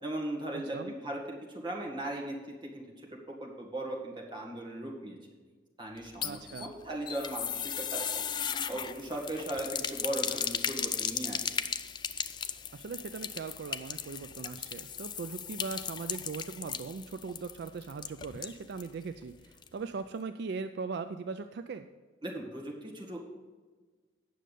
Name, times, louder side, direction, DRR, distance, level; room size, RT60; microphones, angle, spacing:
voice 1, 0.0-2.4 2.6-3.1 3.4-5.2 5.8-8.2 8.7-11.5 22.2-23.2, right 1 dB, 25° right, -2 dB, 2.0 m, -38 dB
voice 2, 0.5-0.9 6.2-6.7 12.7-21.9, right 4 dB, 60° right, 9 dB, 0.4 m, -39 dB
sound 1, 6.0-18.9 19.2-19.3 19.6-19.7, left 8 dB, 25° left, 0.3 m, -36 dB
9.2 x 6.4 x 6.6 m, 1.4 s
head